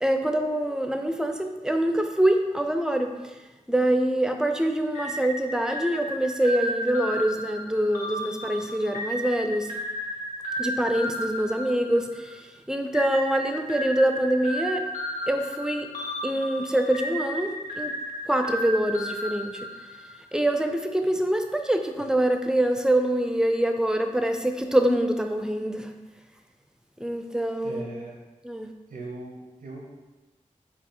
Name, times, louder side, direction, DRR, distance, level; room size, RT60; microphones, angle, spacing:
voice 1, 0.0-3.3 3.7-9.7 10.6-14.8 15.3-15.9 16.2-17.5 17.8-18.0 18.3-19.7 20.3-25.9 27.0-27.9 28.4-28.7, right 1 dB, 5° right, 5 dB, 0.4 m, -25 dB
sound 1, 4.9-12.4 12.9-20.2, equal, 65° left, 1.1 m, -34 dB
voice 2, 27.6-28.2 28.9-29.9, right 2 dB, 90° right, -1 dB, 0.6 m, -39 dB
4.1 x 2.4 x 3.7 m, 1.2 s
cardioid pair, 45°, 14 cm